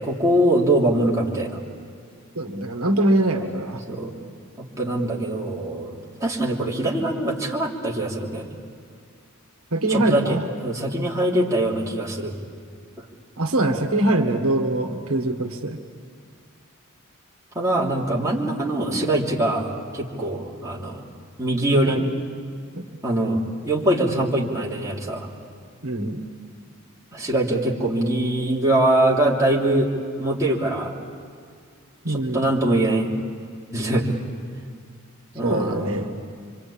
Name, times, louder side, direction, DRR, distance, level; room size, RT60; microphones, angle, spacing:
voice 1, 0.0-1.6 3.9-4.1 4.6-8.6 9.9-12.4 13.0-13.1 14.9-15.0 17.5-21.0 21.4-22.0 23.0-25.3 27.1-29.9 30.2-31.0 32.1-33.1 33.7-34.2 35.3-36.0, right 1 dB, 15° right, -4 dB, 3.3 m, -23 dB
voice 2, 2.4-3.8 9.7-10.4 13.4-15.8 21.9-22.0 22.7-22.8 25.8-26.2 32.1-32.4 35.4-36.1, right 1 dB, 75° right, 4 dB, 1.7 m, -23 dB
26.5 x 24.0 x 8.7 m, 2.2 s
head